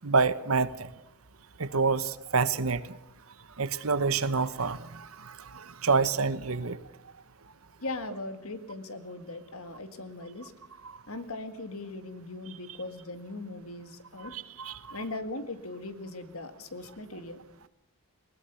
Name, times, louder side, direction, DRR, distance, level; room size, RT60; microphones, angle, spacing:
voice 1, 0.0-0.9 1.6-2.8 3.6-6.8 10.8-10.9 14.2-15.0, right 4 dB, 75° right, 15 dB, 1.1 m, -28 dB
voice 2, 7.8-10.5 11.1-14.3 14.9-17.4, left 2 dB, 75° left, 10 dB, 1.9 m, -39 dB
21.0 x 19.0 x 7.0 m, 0.85 s
head